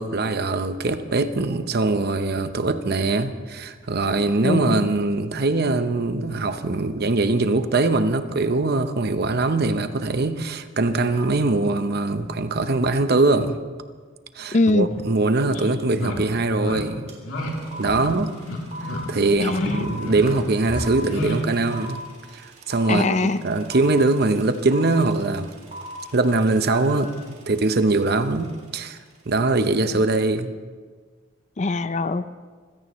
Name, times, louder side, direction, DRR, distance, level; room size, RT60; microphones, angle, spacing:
voice 1, 0.0-13.6 14.3-17.1 17.5-18.3 18.8-22.0 22.3-25.5 26.1-27.2 27.5-30.5, right 2 dB, 50° right, 10 dB, 0.8 m, -22 dB
voice 2, 4.4-4.9 14.5-14.9 19.4-20.0 22.9-23.4 31.6-32.3, left 2 dB, 35° left, 13 dB, 0.5 m, -22 dB
sound 1, 14.9-15.0 15.5-15.6 15.9-16.2 16.6-16.8 17.2-17.5 17.8-18.1 18.4-19.0 19.4-19.7 20.0-20.4 20.7-21.4, left 1 dB, 80° left, 3.2 m, -30 dB
sound 2, 17.1-17.2 17.4-28.5, right 1 dB, 35° right, 3.0 m, -39 dB
25.0 x 16.5 x 3.1 m, 1.5 s
head